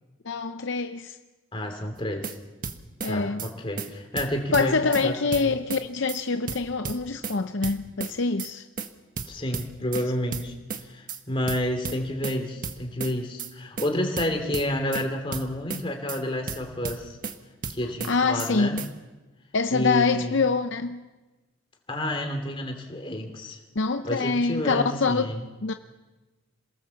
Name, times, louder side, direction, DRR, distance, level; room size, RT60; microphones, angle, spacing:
voice 1, 0.2-1.2 3.0-3.5 4.5-8.7 18.0-18.9 19.5-21.1 23.8-25.2 25.6-25.7, left 4 dB, 60° left, 0.7 m, -25 dB
voice 2, 1.5-2.4 3.0-5.6 9.3-10.5 10.8-17.2 17.7-18.8 19.7-20.4 21.9-23.6 24.0-25.4, left 1 dB, 25° left, 2.9 m, -30 dB
sound 1, 2.0-2.4 2.6-3.1 3.4-3.5 3.8-3.9 4.2-5.1 5.3-5.8 6.1-6.2 6.5-7.4 7.6-8.1 8.4-8.5 8.8-8.9 9.2-10.0 10.3-10.8 11.1-11.2 11.5-12.4 12.6-13.1 13.4-13.5 13.8-13.9 14.2-15.0 15.3-15.8 16.1-16.2 16.5-17.4 17.6-18.1 18.4-18.5 18.8-18.9, right 5 dB, 40° right, 1.3 m, -33 dB
27.0 x 18.5 x 7.2 m
head